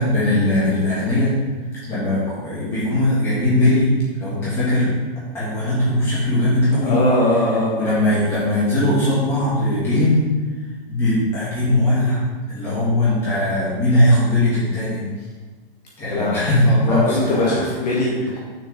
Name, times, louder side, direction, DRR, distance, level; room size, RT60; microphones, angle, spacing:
voice 1, 0.0-1.3 1.7-3.9 4.2-4.9 5.3-7.0 7.8-10.3 10.9-12.2 12.5-15.0 16.0-17.6, left 1 dB, 10° left, -11 dB, 2.5 m, -19 dB
voice 2, 6.8-8.0 16.1-16.4 16.9-18.4, left 1 dB, 45° left, -5 dB, 1.4 m, -21 dB
7.1 x 6.6 x 3.7 m, 1.3 s
hypercardioid pair, 180°, 29 cm